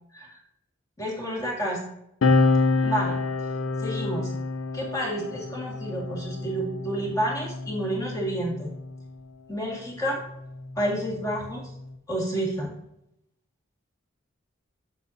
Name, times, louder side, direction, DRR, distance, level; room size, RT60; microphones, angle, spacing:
voice 1, 1.0-1.8 2.8-3.2 3.8-4.3 4.7-8.7 9.5-10.2 10.8-11.6 12.1-12.7, right 1 dB, 20° left, -2 dB, 2.0 m, -29 dB
sound 1, 2.2-9.1 10.1-11.9, left 3 dB, 75° left, 0.6 m, -28 dB
8.2 x 7.0 x 2.8 m, 0.76 s
head